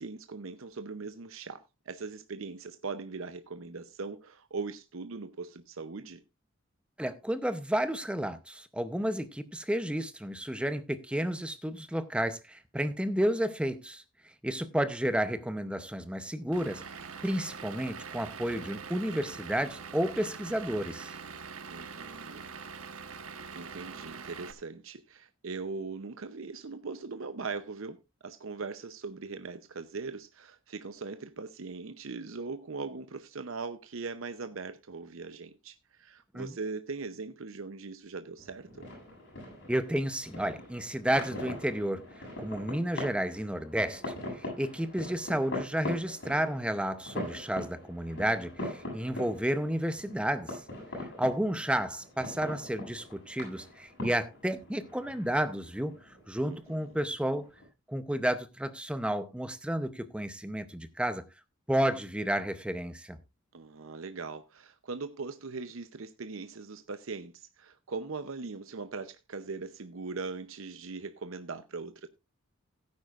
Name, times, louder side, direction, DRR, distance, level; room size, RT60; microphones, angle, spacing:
voice 1, 0.0-6.2 21.7-22.4 23.5-28.0 28.2-38.9 56.4-56.9 63.5-72.1, right 4 dB, 70° right, 0.7 m, -40 dB
voice 2, 7.0-14.0 14.4-21.1 36.3-36.5 39.7-42.0 42.4-50.6 51.2-56.0 56.3-57.5 57.9-61.2 61.7-63.2, right 1 dB, 5° right, 0.7 m, -31 dB
Vehicle / Engine, 16.5-24.5, right 5 dB, 85° right, 1.3 m, -43 dB
sound 1, 38.4-57.7, left 1 dB, 55° left, 7.8 m, -42 dB
16.5 x 9.6 x 2.5 m
head